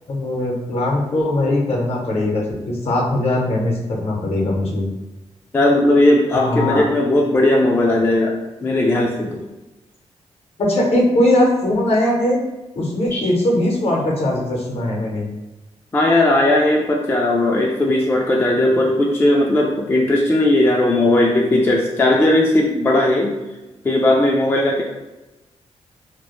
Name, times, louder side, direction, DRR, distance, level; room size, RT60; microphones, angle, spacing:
voice 1, 0.1-4.9 6.3-6.8 10.6-12.4 12.8-15.3, left 1 dB, 60° left, -1 dB, 0.7 m, -20 dB
voice 2, 5.5-9.4 13.1-13.2 15.9-23.3 23.8-24.8, left 1 dB, 20° left, -1 dB, 0.3 m, -17 dB
2.1 x 2.0 x 2.9 m, 1.0 s
cardioid pair, 85°, 12 cm